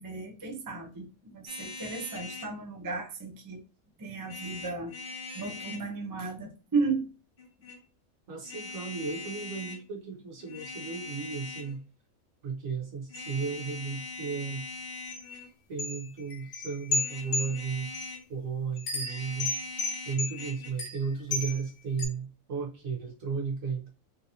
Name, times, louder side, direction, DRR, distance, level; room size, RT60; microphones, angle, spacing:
voice 1, 0.0-3.6 4.0-4.9 5.3-7.1, right 4 dB, 25° right, 0.5 m, -34 dB
sound 1, 1.5-2.5 4.2-5.9 7.4-7.8 8.4-9.8 10.4-11.8 13.1-15.5 16.9-18.3 18.9-20.7, left 3 dB, 65° left, 1.9 m, -42 dB
voice 2, 8.3-11.8 12.4-14.6 15.7-17.9 18.3-19.5 20.0-23.9, right 5 dB, 75° right, 1.5 m, -34 dB
sound 2, 15.1-15.2 15.8-18.1 18.8-21.6 22.0-22.1, left 3 dB, 85° left, 1.4 m, -33 dB
3.8 x 2.6 x 2.8 m
omnidirectional pair, 1.4 m